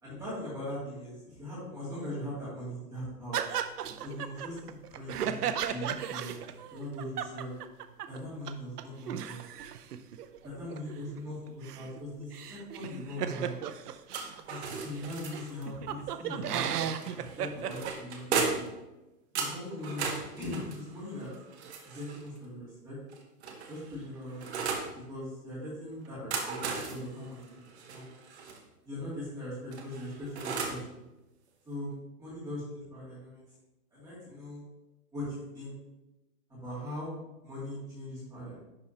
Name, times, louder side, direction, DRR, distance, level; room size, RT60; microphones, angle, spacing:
voice 1, 0.0-3.4 4.0-4.6 4.9-6.4 6.7-7.5 8.1-9.4 10.4-13.5 14.4-18.6 19.3-21.3 21.8-23.0 23.7-24.6 25.1-26.6 26.9-28.1 28.8-31.0 31.7-33.4 33.9-34.6 35.1-35.7 36.5-37.2 37.4-38.6, left 1 dB, 10° right, -10 dB, 2.5 m, -40 dB
sound 1, 3.3-8.2 8.5-8.6 8.8-14.4 15.0-15.1 15.3-17.9, right 9 dB, 75° right, 0.7 m, -35 dB
sound 2, 14.1-15.7 17.0-18.8 19.4-22.3 23.1-24.9 26.1-28.6 29.7-30.9, right 5 dB, 45° right, 1.0 m, -36 dB
10.5 x 4.3 x 2.9 m, 0.99 s
hypercardioid pair, 160°, 47 cm